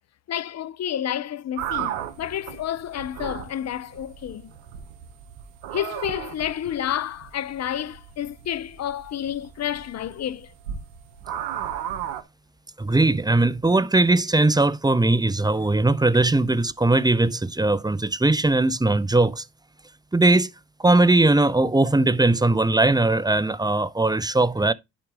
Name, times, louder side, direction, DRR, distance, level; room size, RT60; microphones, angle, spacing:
voice 1, 0.3-4.5 5.7-10.5, left 10 dB, 45° left, 0.6 m, -30 dB
sound 1, 1.6-12.2, right 10 dB, 85° right, 1.0 m, -35 dB
voice 2, 12.8-19.4 20.1-20.5 20.8-24.7, right 2 dB, 10° right, 0.8 m, -20 dB
11.0 x 4.7 x 3.5 m
hypercardioid pair, 50°, 36 cm